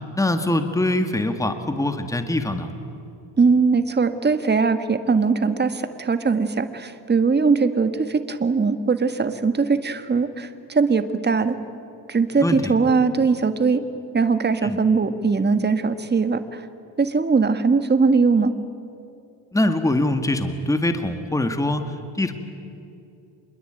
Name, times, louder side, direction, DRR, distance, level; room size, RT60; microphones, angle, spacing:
voice 1, 0.2-2.7 12.4-12.7 14.6-14.8 19.5-22.3, left 1 dB, 5° left, 7 dB, 1.8 m, -23 dB
voice 2, 3.4-11.5 12.1-13.8 14.1-16.6 17.0-18.5, right 4 dB, 25° right, 10 dB, 1.7 m, -20 dB
27.0 x 22.0 x 9.1 m, 2.7 s
cardioid pair, 105°, 43 cm